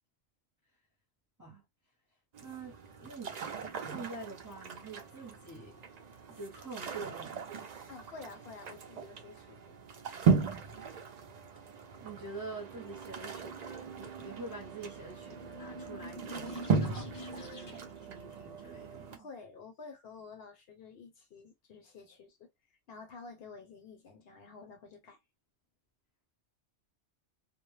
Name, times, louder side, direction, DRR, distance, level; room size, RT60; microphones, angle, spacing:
sound 1, 2.3-19.2, right 5 dB, 60° right, 0.4 m, -37 dB
voice 1, 2.4-5.8 6.4-7.4 12.0-19.3, right 3 dB, 20° right, 0.6 m, -46 dB
voice 2, 7.9-9.7 19.1-22.5 22.9-25.2, left 4 dB, 65° left, 0.8 m, -50 dB
sound 2, 15.1-18.1, equal, 40° left, 0.3 m, -45 dB
2.1 x 2.0 x 3.1 m
omnidirectional pair, 1.2 m